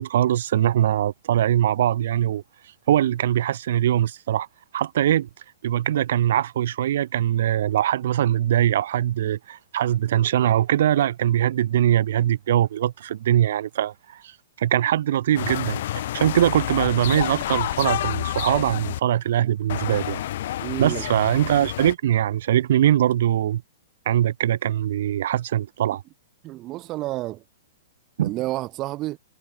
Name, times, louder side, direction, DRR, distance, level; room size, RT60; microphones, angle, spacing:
voice 1, 0.0-2.4 2.9-4.5 4.7-5.3 5.6-14.3 14.6-20.2 20.8-23.6 24.1-26.0 28.2-28.3, right 11 dB, 65° right, 2.0 m, -22 dB
sound 1, 15.3-19.0 19.7-21.9, left 13 dB, 55° left, 0.6 m, -29 dB
voice 2, 20.6-21.1 26.4-27.4 28.2-29.2, right 17 dB, 30° right, 2.0 m, -30 dB
hypercardioid pair, 150°, 0 cm